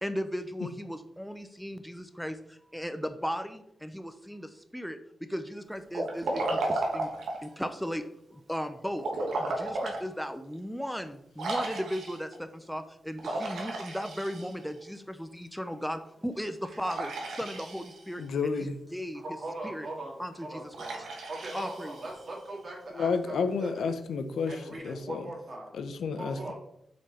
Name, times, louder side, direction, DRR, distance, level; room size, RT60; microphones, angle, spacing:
voice 1, 0.0-5.0 5.3-7.1 7.4-8.0 8.3-9.0 9.4-19.2 19.6-19.9 20.2-20.9 21.5-22.0, equal, ahead, 0.4 m, -36 dB
Liquid, 5.9-7.5 9.0-10.0 10.5-10.6 11.4-12.3 13.2-14.8 16.8-18.2 20.7-22.4, right 2 dB, 90° right, 1.3 m, -34 dB
voice 2, 18.2-18.8 22.9-25.3 25.7-26.5, left 5 dB, 85° left, 0.7 m, -31 dB
voice 3, 19.1-23.3 23.6-23.9 24.5-25.7 26.2-26.5, right 2 dB, 45° right, 2.0 m, -40 dB
6.1 x 4.4 x 4.2 m
wide cardioid pair, 125°, 0 cm